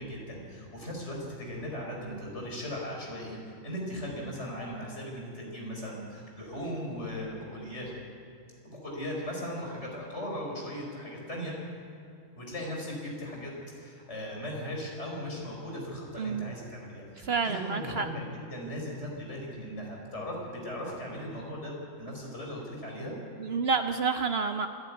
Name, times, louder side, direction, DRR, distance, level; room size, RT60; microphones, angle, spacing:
voice 1, 0.0-3.4 3.6-7.9 8.6-11.5 12.4-13.5 13.8-21.7 22.0-23.2, equal, 60° left, -1 dB, 5.7 m, -38 dB
voice 2, 16.2-16.5 17.2-18.1 23.4-24.7, right 5 dB, 60° right, 8 dB, 0.9 m, -29 dB
26.0 x 11.0 x 9.5 m, 2.6 s
omnidirectional pair, 1.4 m